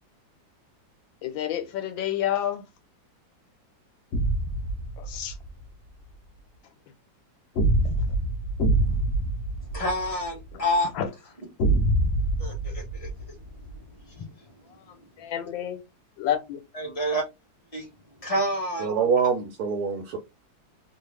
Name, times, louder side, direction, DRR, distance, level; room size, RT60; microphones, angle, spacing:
voice 1, 1.2-2.6 5.0-5.3 7.8-7.9 10.5-10.6 10.9-11.1 15.2-15.8 16.2-16.6 16.8-16.9, left 11 dB, 85° left, 1.5 m, -29 dB
sound 1, 4.1-5.5 7.6-10.5 11.6-13.7, right 1 dB, 55° left, 1.0 m, -25 dB
voice 2, 9.7-10.9 12.4-13.4 14.1-14.3 16.7-17.3 17.7-17.9 18.2-18.9, equal, 20° left, 1.2 m, -28 dB
voice 3, 18.8-20.2, right 6 dB, 70° right, 0.9 m, -25 dB
3.1 x 2.4 x 3.3 m
omnidirectional pair, 2.0 m